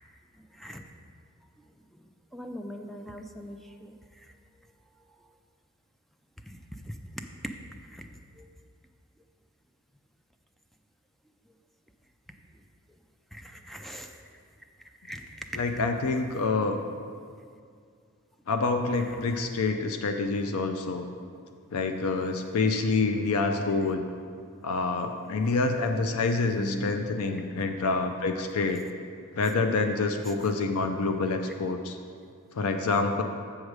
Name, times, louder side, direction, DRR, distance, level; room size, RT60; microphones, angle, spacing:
voice 1, 0.5-0.8 2.3-4.3 6.5-6.6 6.8-7.5 7.9-8.1 8.4-8.5 13.3-14.2 15.0-15.7 26.6-27.0, equal, ahead, 5 dB, 0.4 m, -40 dB
voice 2, 15.5-16.8 18.5-21.1 21.7-24.0 24.6-28.8 29.3-32.0 32.5-33.2, left 3 dB, 70° left, 6 dB, 0.5 m, -27 dB
7.3 x 6.4 x 4.8 m, 2.2 s
head